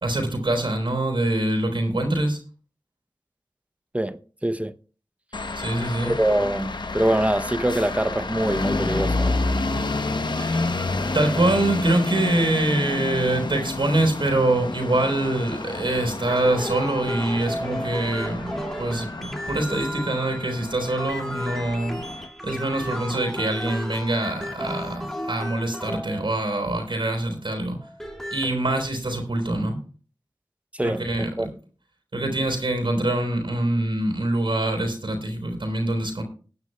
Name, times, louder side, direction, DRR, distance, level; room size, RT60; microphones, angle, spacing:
voice 1, 0.0-2.4 5.6-6.1 10.4-10.8 11.1-22.0 22.4-27.8 28.3-29.8 30.8-31.5 32.1-36.2, right 1 dB, 85° right, 3.6 m, -24 dB
voice 2, 3.9-4.7 6.0-9.4 30.7-31.5, right 1 dB, 15° right, 0.6 m, -24 dB
sound 1, 5.3-22.3, left 3 dB, 65° left, 0.8 m, -29 dB
sound 2, 16.3-26.7 27.8-28.6, equal, 5° left, 2.1 m, -34 dB
20.0 x 9.6 x 2.2 m
wide cardioid pair, 70°, 8 cm